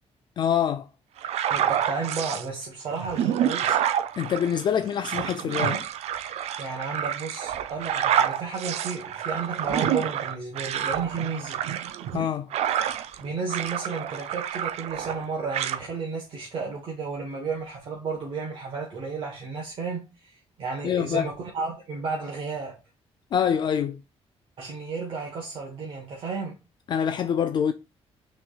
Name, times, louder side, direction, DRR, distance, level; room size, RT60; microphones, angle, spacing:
voice 1, 0.4-0.9 4.2-5.9 12.1-12.5 20.8-21.3 23.3-24.0 26.9-27.7, left 8 dB, 45° left, 0.3 m, -25 dB
sound 1, 1.2-2.5 2.9-13.2 13.5-15.2 15.5-15.8, right 10 dB, 75° right, 0.5 m, -28 dB
voice 2, 1.5-3.8 6.6-11.6 13.2-22.8 24.6-26.5, right 4 dB, 50° right, 1.1 m, -33 dB
6.0 x 3.2 x 2.3 m
cardioid pair, 155°, 11 cm